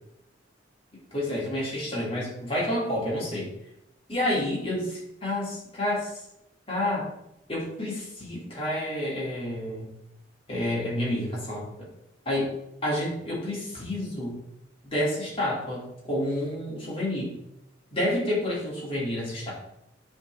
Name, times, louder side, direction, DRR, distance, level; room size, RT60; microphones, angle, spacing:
voice 1, 1.1-3.5 4.1-6.1 6.7-7.1 7.5-9.9 10.5-11.7 12.3-12.5 12.8-14.4 14.8-17.3 17.9-19.5, left 1 dB, 30° left, -5 dB, 2.5 m, -29 dB
9.4 x 3.8 x 3.3 m, 0.81 s
head